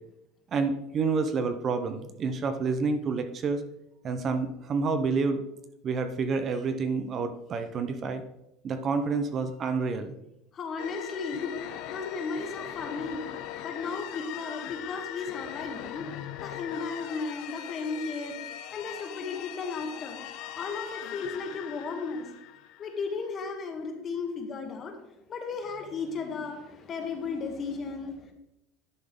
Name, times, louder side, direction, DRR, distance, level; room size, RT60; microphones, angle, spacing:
voice 1, 0.5-3.6 4.0-5.4 5.8-8.2 8.6-10.1, right 4 dB, 35° right, 9 dB, 0.7 m, -28 dB
voice 2, 10.5-11.5 11.9-13.2 13.6-16.1 16.4-18.4 18.7-20.2 20.5-22.3 22.8-24.9 25.3-28.3, left 4 dB, 30° left, 4 dB, 1.4 m, -35 dB
sound 1, 10.8-23.3, left 11 dB, 60° left, 0.6 m, -40 dB
10.5 x 3.9 x 5.1 m, 0.85 s
supercardioid pair, 135°, 0 cm